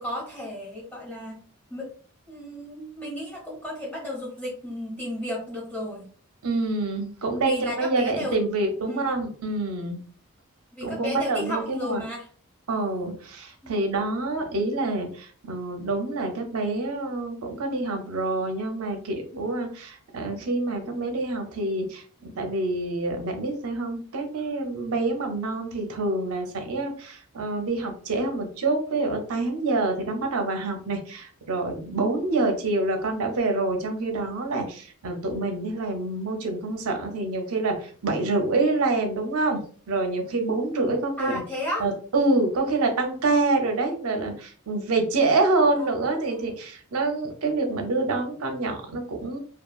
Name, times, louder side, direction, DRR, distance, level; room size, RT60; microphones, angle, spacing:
voice 1, 0.0-1.3 1.7-1.9 2.3-6.1 7.4-8.4 8.9-9.1 10.7-12.3 13.6-13.8 32.6-32.7 41.2-41.9 45.7-45.9 46.3-46.4, left 1 dB, 5° left, -6 dB, 1.1 m, -33 dB
voice 2, 6.4-10.0 10.8-12.0 12.7-41.4 41.8-49.4, right 2 dB, 85° right, 3 dB, 0.6 m, -26 dB
2.8 x 2.3 x 2.3 m, 0.44 s
head